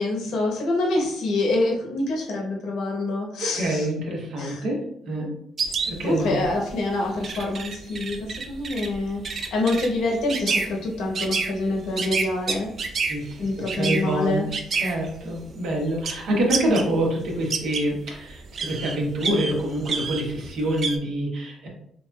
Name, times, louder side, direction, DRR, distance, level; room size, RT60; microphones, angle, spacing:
voice 1, 0.0-3.9 4.4-4.6 6.0-8.2 8.5-13.0 13.4-14.5, left 2 dB, 80° left, -1 dB, 0.9 m, -26 dB
voice 2, 3.5-5.3 5.8-6.4 13.1-14.4 14.7-21.7, right 1 dB, 75° right, -1 dB, 1.0 m, -26 dB
sound 1, 5.6-16.9 17.2-21.0, right 5 dB, 55° right, 0.4 m, -30 dB
3.4 x 2.8 x 2.2 m, 0.71 s
cardioid pair, 90°, 0 cm